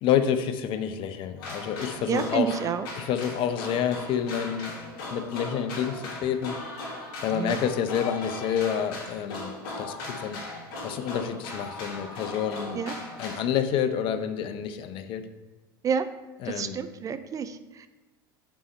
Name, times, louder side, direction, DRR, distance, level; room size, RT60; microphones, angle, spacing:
voice 1, 0.0-2.6 3.0-4.7 5.1-6.6 7.2-9.5 9.8-10.4 10.8-12.8 13.2-15.2 16.4-16.8, left 8 dB, 45° left, 9 dB, 0.6 m, -28 dB
sound 1, 1.4-13.4, left 2 dB, 65° left, 1.7 m, -38 dB
voice 2, 2.1-2.9 7.3-7.6 12.7-13.0 15.8-16.0 16.4-17.9, right 7 dB, 30° right, 11 dB, 0.4 m, -29 dB
5.5 x 4.1 x 4.4 m, 1.1 s
hypercardioid pair, 90°, 12 cm